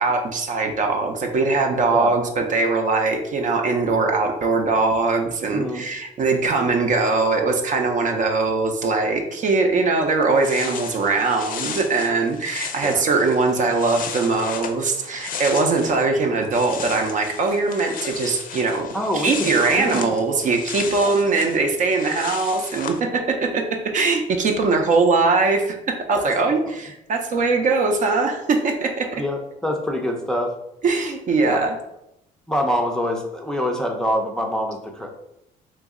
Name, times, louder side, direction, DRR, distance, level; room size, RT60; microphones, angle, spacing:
voice 1, 0.0-18.9 19.1-23.6 23.9-29.1 30.8-31.7, right 3 dB, 50° right, 3 dB, 0.5 m, -21 dB
voice 2, 5.5-5.8 12.8-13.0 18.9-20.2 21.0-21.1 26.1-26.5 29.2-30.5 31.4-31.6 32.5-35.1, equal, 5° left, 1 dB, 0.5 m, -25 dB
sound 1, 9.9-10.0 10.2-16.1 16.3-23.0, left 6 dB, 55° left, 0.5 m, -35 dB
3.0 x 2.6 x 3.6 m, 0.83 s
cardioid pair, 110°, 17 cm